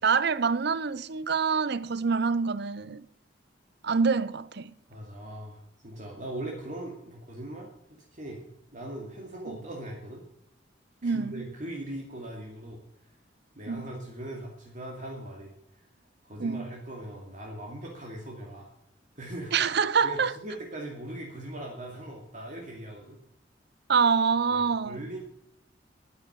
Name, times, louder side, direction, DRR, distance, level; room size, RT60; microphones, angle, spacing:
voice 1, 0.0-3.0 3.8-4.7 11.0-11.4 13.7-13.8 16.4-16.7 19.5-20.3 23.9-25.0, right 5 dB, 65° right, 0.7 m, -26 dB
voice 2, 4.9-8.5 8.7-10.2 11.0-12.8 13.5-15.8 16.2-18.7 19.2-19.7 20.0-23.2 24.5-25.2, right 1 dB, 45° right, 2.4 m, -40 dB
11.0 x 9.7 x 8.0 m
head